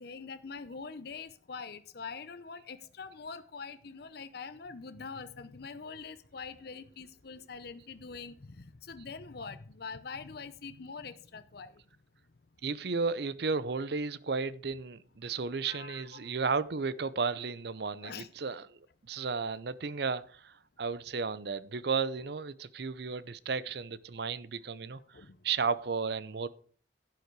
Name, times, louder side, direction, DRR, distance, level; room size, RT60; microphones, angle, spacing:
voice 1, 0.0-11.7 15.6-16.3 18.0-18.3 25.1-25.4, left 5 dB, 55° left, 11 dB, 0.7 m, -44 dB
voice 2, 12.6-18.8 19.1-26.5, right 5 dB, 60° right, 17 dB, 0.6 m, -34 dB
11.5 x 9.4 x 4.7 m, 0.43 s
head